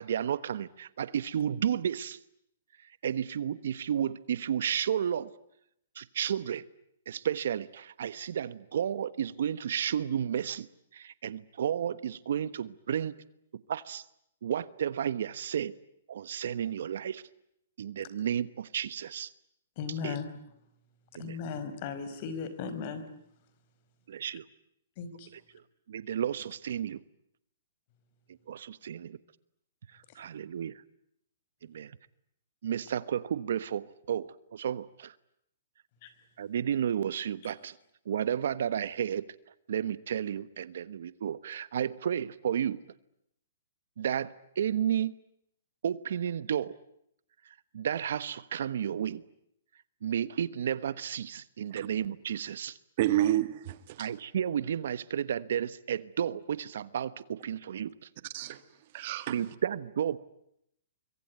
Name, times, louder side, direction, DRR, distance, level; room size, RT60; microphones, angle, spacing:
voice 1, 0.0-2.2 3.0-5.3 5.9-6.6 7.1-10.7 10.9-13.2 13.7-14.0 14.4-15.7 16.1-17.2 17.8-19.3 20.0-20.2 21.1-21.4 24.1-24.4 25.5-25.6 25.9-27.0 28.5-29.2 30.1-30.8 31.6-31.9 32.6-35.1 36.4-37.8 38.0-39.2 39.7-42.8 44.0-45.1 45.8-46.7 47.7-49.2 50.0-52.8 54.0-57.9 59.3-60.2, right 9 dB, 70° right, 1.2 m, -32 dB
voice 2, 19.8-20.3 21.2-23.0 25.0-25.3 36.0-36.1 37.4-37.5, left 6 dB, 40° left, 5.0 m, -37 dB
voice 3, 53.0-54.1 58.3-58.6 58.9-59.4, right 13 dB, 45° right, 1.7 m, -29 dB
25.5 x 23.5 x 9.5 m
hypercardioid pair, 150°, 0 cm